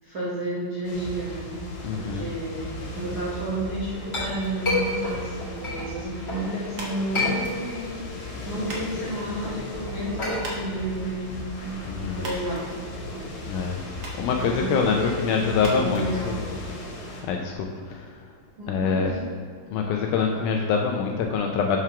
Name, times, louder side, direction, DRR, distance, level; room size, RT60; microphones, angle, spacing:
voice 1, 0.0-1.6 1.9-12.7 13.1-13.3 14.4-16.3 18.6-19.3, right 1 dB, 75° right, -8 dB, 0.9 m, -31 dB
sound 1, 0.8-17.2, left 2 dB, 65° left, 2.6 m, -37 dB
voice 2, 1.8-2.3 11.9-12.2 13.5-13.8 14.2-16.6 17.2-17.5 17.9-18.2 18.7-19.1 19.7-21.8, left 5 dB, 80° left, 2 dB, 1.8 m, -25 dB
Chink clink, 3.8-6.5 6.9-7.9 8.3-12.4, left 2 dB, 25° left, 1.4 m, -31 dB
sound 2, 6.7-16.9, right 1 dB, 60° right, 1.6 m, -44 dB
5.7 x 4.7 x 5.7 m, 2.1 s
omnidirectional pair, 4.0 m